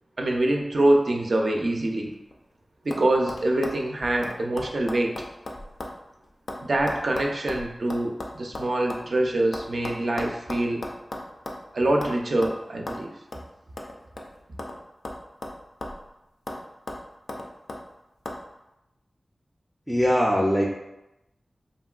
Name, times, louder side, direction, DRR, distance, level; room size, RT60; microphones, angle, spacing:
voice 1, 0.2-2.1 2.8-5.2 6.6-10.9 11.7-13.1, right 1 dB, 70° right, 1 dB, 0.4 m, -25 dB
sound 1, 2.1-2.5 2.9-3.0 3.3-6.0 6.2-9.1 9.5-11.7 12.0-12.2 12.4-12.6 12.9-13.0 13.3-13.5 13.8-14.8 15.1-16.1 16.5-16.6 16.9-17.8 18.3-18.4, left 1 dB, 75° left, 0.3 m, -36 dB
voice 2, 19.9-20.7, equal, 5° left, -2 dB, 0.3 m, -21 dB
2.9 x 2.6 x 2.3 m, 0.92 s
wide cardioid pair, 70°, 0 cm